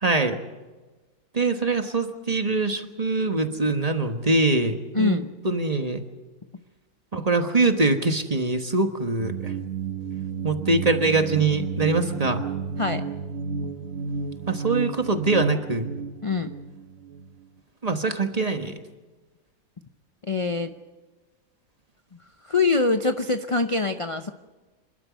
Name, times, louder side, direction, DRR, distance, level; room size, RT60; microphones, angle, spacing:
voice 1, 0.0-0.4 1.3-5.2 5.4-6.0 7.1-9.5 10.4-12.4 14.5-15.9 17.8-18.8, right 3 dB, 25° right, 7 dB, 1.3 m, -23 dB
voice 2, 4.9-5.3 12.8-13.1 16.2-16.5 20.2-20.7 22.4-24.3, left 3 dB, 35° left, 9 dB, 0.5 m, -24 dB
sound 1, 9.2-17.3, right 5 dB, 65° right, 1.4 m, -32 dB
27.5 x 12.5 x 9.3 m, 1.2 s
omnidirectional pair, 1.5 m